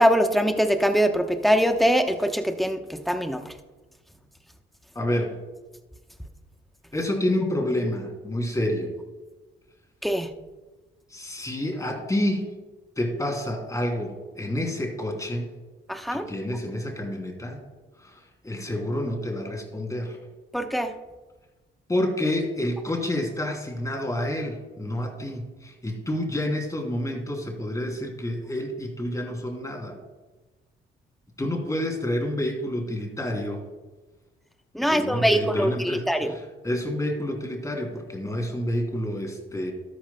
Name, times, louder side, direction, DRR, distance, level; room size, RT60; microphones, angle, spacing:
voice 1, 0.0-3.4 10.0-10.3 15.9-16.2 20.5-20.9 34.7-36.3, equal, ahead, 6 dB, 0.9 m, -22 dB
voice 2, 4.9-5.3 6.9-8.9 11.1-12.5 13.0-15.5 16.1-17.6 18.0-20.2 21.9-30.0 31.4-33.6 34.8-39.7, left 1 dB, 15° left, 2 dB, 2.9 m, -29 dB
13.0 x 11.5 x 2.2 m, 1.2 s
cardioid pair, 90°, 20 cm